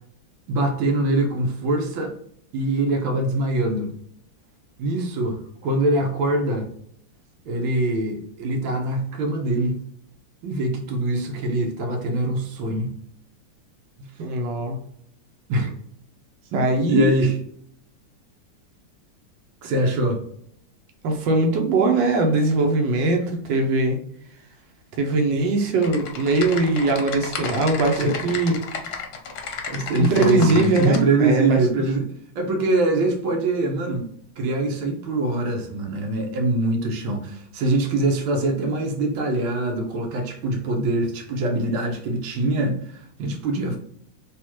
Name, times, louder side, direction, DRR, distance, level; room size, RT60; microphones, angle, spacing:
voice 1, 0.5-2.1 2.5-3.9 4.8-6.7 7.5-9.8 10.4-12.9 14.0-14.1 15.5-15.7 16.5-17.4 19.6-20.2 28.0-28.1 29.7-32.0 32.4-34.1 34.4-43.8, right 2 dB, 85° right, 2 dB, 1.6 m, -23 dB
voice 2, 14.2-14.8 16.5-17.1 21.0-24.0 25.0-28.5 30.0-31.6, right 2 dB, 70° right, 3 dB, 1.4 m, -21 dB
Typing, 25.8-31.0, left 5 dB, 70° left, 1.1 m, -32 dB
3.5 x 3.0 x 2.9 m, 0.67 s
omnidirectional pair, 2.2 m